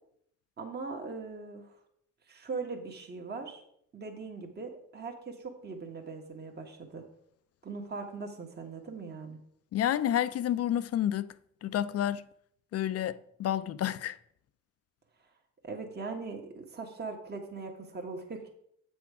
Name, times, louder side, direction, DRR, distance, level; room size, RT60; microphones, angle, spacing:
voice 1, 0.6-1.8 2.3-3.6 3.9-7.1 7.6-9.4 15.6-18.5, right 4 dB, 35° right, 1.4 m, -40 dB
voice 2, 9.7-11.3 11.6-12.2 12.7-14.2, left 11 dB, 55° left, 0.5 m, -29 dB
8.0 x 6.1 x 4.8 m
cardioid pair, 90°, 30 cm